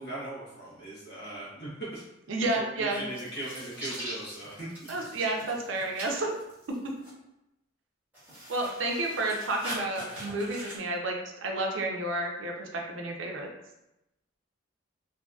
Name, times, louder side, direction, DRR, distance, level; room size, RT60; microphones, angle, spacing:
voice 1, 0.0-2.0 2.5-4.9, right 1 dB, 55° left, -7 dB, 1.1 m, -39 dB
voice 2, 2.3-3.0 4.9-6.3 8.5-13.5, right 2 dB, 70° right, 1 dB, 0.5 m, -31 dB
sound 1, 3.1-7.1 8.1-10.8, right 1 dB, 10° right, 1.1 m, -42 dB
2.6 x 2.5 x 2.3 m, 0.91 s
head